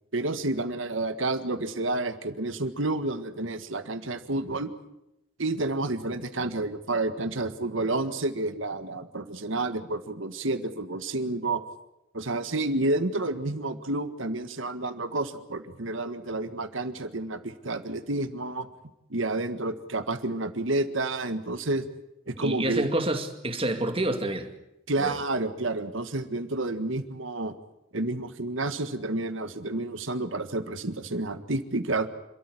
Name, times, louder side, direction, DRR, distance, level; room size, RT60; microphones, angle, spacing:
voice 1, 0.1-4.7 5.4-11.6 12.1-18.7 19.1-21.8 22.3-22.8 24.9-27.6 27.9-32.1, right 2 dB, 65° right, 9 dB, 1.7 m, -30 dB
voice 2, 22.4-24.5 25.0-25.2, right 1 dB, 25° right, 6 dB, 2.2 m, -28 dB
28.0 x 13.5 x 9.9 m, 0.88 s
head